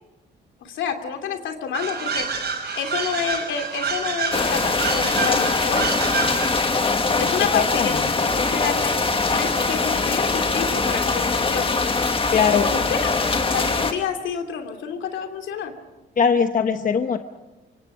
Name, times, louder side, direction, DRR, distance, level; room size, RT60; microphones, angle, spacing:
voice 1, 0.6-5.9 7.2-9.0 9.3-15.7, left 7 dB, 75° left, 5 dB, 2.8 m, -29 dB
sound 1, 1.7-6.9, right 5 dB, 55° right, 6.1 m, -28 dB
sound 2, 4.3-13.9, left 3 dB, 25° left, 1.8 m, -22 dB
voice 2, 7.5-8.1 12.3-12.7 16.2-17.2, left 6 dB, 40° left, 7 dB, 1.1 m, -20 dB
26.0 x 24.0 x 5.1 m, 1.1 s
cardioid pair, 90°, 20 cm